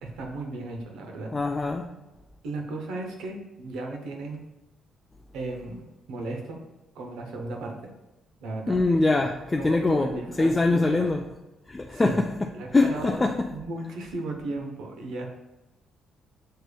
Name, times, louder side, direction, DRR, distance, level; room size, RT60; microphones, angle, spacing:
voice 1, 0.0-1.3 2.4-4.4 5.3-6.6 6.9-7.8 8.4-8.8 9.5-11.1 11.9-12.2 12.5-13.2 13.5-15.3, right 2 dB, 90° right, 0.8 m, -35 dB
voice 2, 1.3-1.9 8.7-10.1 10.4-11.2 11.7-13.5, left 2 dB, 20° left, 0.3 m, -23 dB
6.5 x 3.3 x 2.2 m
cardioid pair, 90°, 0 cm